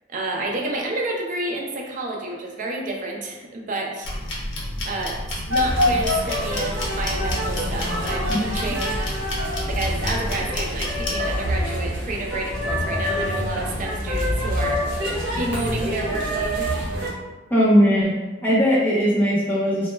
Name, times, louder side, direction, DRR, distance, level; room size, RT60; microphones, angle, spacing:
voice 1, 0.1-4.1 4.8-5.2 5.5-9.1 9.7-14.8 15.3-16.8, right 2 dB, 45° right, 0 dB, 0.4 m, -30 dB
sound 1, 4.0-11.2, left 1 dB, 75° left, 0.5 m, -30 dB
sound 2, 5.5-17.1, equal, 70° right, 0.8 m, -26 dB
voice 2, 17.5-18.1 18.4-19.9, equal, 10° left, -8 dB, 0.5 m, -18 dB
2.1 x 2.0 x 3.1 m, 1.2 s
head